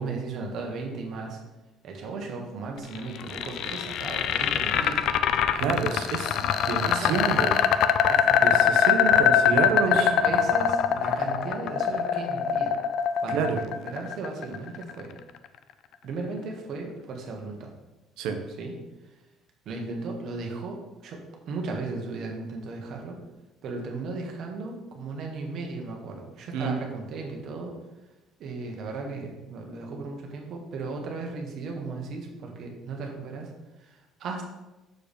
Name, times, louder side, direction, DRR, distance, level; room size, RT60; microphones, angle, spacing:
voice 1, 0.0-1.4 1.8-5.1 6.6-7.6 8.0-8.6 9.9-12.8 13.2-15.1 16.0-17.7 18.6-18.7 19.6-21.2 21.5-23.2 23.6-27.8 28.4-33.5 33.8-34.5, right 3 dB, 45° right, 2 dB, 1.3 m, -36 dB
sound 1, 2.9-15.0, left 8 dB, 55° left, 0.4 m, -23 dB
voice 2, 5.6-7.6 8.3-10.1 13.3-13.6 18.2-18.4 26.5-26.7, right 5 dB, 80° right, 5 dB, 0.9 m, -28 dB
6.6 x 4.8 x 5.2 m, 1.1 s
cardioid pair, 175°, 0 cm